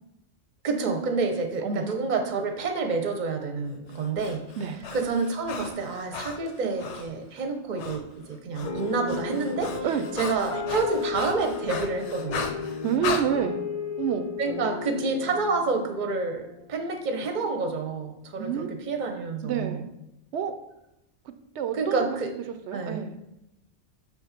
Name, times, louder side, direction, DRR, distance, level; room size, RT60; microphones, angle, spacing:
voice 1, 0.6-4.5 4.9-9.7 10.1-12.5 14.4-19.8 21.7-22.3 22.7-23.0, right 4 dB, 45° right, 5 dB, 0.8 m, -28 dB
Breathing, 3.9-7.1 7.8-8.0 8.3-13.3, left 6 dB, 80° left, 1.0 m, -36 dB
sound 1, 8.6-17.2, left 6 dB, 40° left, 0.6 m, -35 dB
voice 2, 9.0-10.0 12.8-13.6 14.0-14.3 18.4-18.7 19.4-19.8 20.3-20.5 21.6-22.2 22.7-23.2, right 8 dB, 75° right, 9 dB, 0.9 m, -29 dB
6.0 x 3.5 x 5.7 m, 0.89 s
omnidirectional pair, 1.2 m